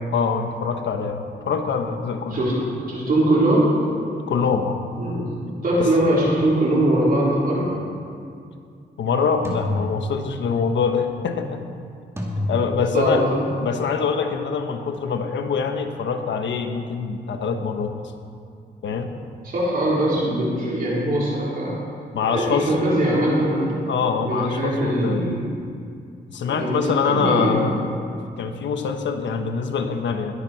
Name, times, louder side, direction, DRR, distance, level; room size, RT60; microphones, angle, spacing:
voice 1, 0.1-2.4 4.3-4.8 5.8-5.9 9.0-11.6 12.5-13.2 13.6-17.9 18.8-19.1 22.1-22.7 23.9-25.4 26.3-27.9 28.4-30.3, left 5 dB, 80° left, 5 dB, 1.3 m, -24 dB
voice 2, 2.8-3.8 5.0-5.3 5.6-7.7 12.3-12.4 12.9-13.4 19.4-21.8 22.2-23.7 24.2-25.4 26.5-27.6, right 1 dB, 50° right, -6 dB, 4.4 m, -21 dB
sound 1, 7.6-7.9 9.4-10.6 12.2-13.3, left 1 dB, 15° right, 2.3 m, -29 dB
21.5 x 10.0 x 4.6 m, 2.4 s
wide cardioid pair, 125°, 19 cm